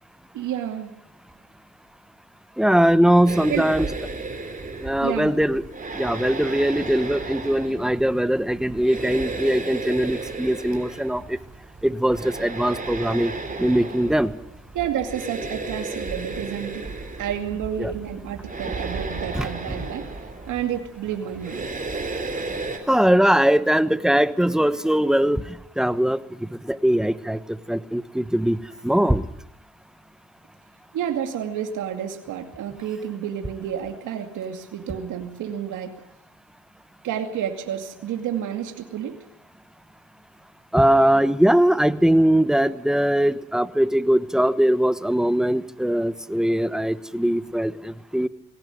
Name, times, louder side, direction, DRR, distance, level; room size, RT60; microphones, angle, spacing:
voice 1, 0.3-0.9 3.5-3.6 5.0-5.3 14.7-16.8 17.2-20.0 20.5-21.7 30.9-36.0 37.0-39.2, right 9 dB, 80° right, 5 dB, 2.5 m, -30 dB
voice 2, 2.6-3.9 4.8-5.6 6.0-11.4 11.8-13.3 13.6-14.3 17.8-17.9 19.3-19.7 22.9-25.4 25.8-26.2 26.7-28.6 28.8-29.2 40.7-48.3, right 1 dB, ahead, 13 dB, 1.1 m, -21 dB
sound 1, 3.3-22.8, right 3 dB, 25° right, 4.2 m, -34 dB
20.5 x 17.5 x 9.3 m, 0.77 s
cardioid pair, 90°, 30 cm